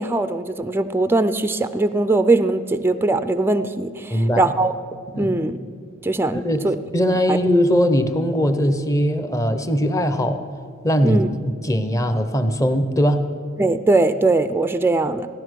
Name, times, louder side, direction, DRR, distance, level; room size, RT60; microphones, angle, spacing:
voice 1, 0.0-4.7 5.2-5.6 6.0-6.8 7.3-7.4 11.0-11.3 13.6-15.3, right 2 dB, 10° right, 11 dB, 0.4 m, -20 dB
voice 2, 4.1-4.5 5.1-5.4 6.3-6.6 6.9-10.4 10.8-11.2 11.6-13.2, equal, 15° left, 9 dB, 0.8 m, -20 dB
15.5 x 11.0 x 6.3 m, 2.1 s
head